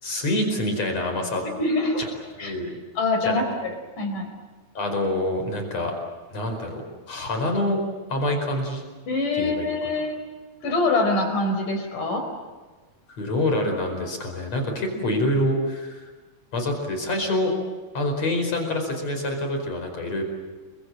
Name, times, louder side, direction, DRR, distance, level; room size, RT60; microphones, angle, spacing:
voice 1, 0.0-1.4 2.4-2.7 3.2-3.4 4.7-5.9 6.3-7.8 8.1-8.8 9.3-10.0 13.2-16.0 16.5-17.5 17.9-20.2, left 1 dB, 50° left, 4 dB, 6.0 m, -26 dB
voice 2, 1.6-2.1 2.4-2.5 3.0-4.3 9.1-10.2 10.6-12.3, left 2 dB, 65° left, 5 dB, 6.2 m, -24 dB
29.0 x 24.5 x 7.6 m, 1.3 s
omnidirectional pair, 4.0 m